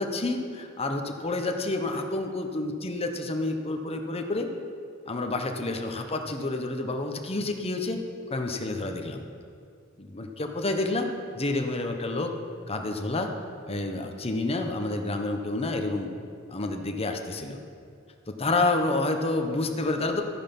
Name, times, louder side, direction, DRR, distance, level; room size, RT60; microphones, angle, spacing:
voice 1, 0.0-4.5 5.1-8.0 8.3-9.2 10.0-12.3 12.7-13.3 13.7-16.1 16.5-17.6 18.3-20.2, left 2 dB, 30° left, 4 dB, 1.0 m, -29 dB
13.0 x 9.8 x 5.4 m, 2.4 s
head